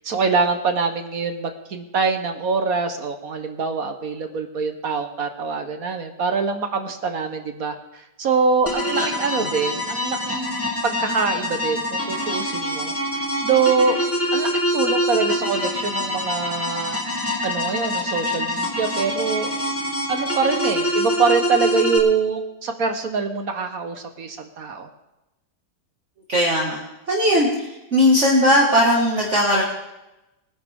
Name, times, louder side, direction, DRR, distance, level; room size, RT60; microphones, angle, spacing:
voice 1, 0.0-12.9 13.4-14.0 14.3-17.0 17.4-19.5 20.1-24.9, right 5 dB, 55° right, 7 dB, 1.4 m, -24 dB
sound 1, 8.7-22.0, equal, 5° left, 2.0 m, -25 dB
voice 2, 26.3-26.8 27.1-29.6, equal, 40° right, -4 dB, 2.1 m, -18 dB
22.0 x 10.5 x 3.6 m, 0.97 s
omnidirectional pair, 2.0 m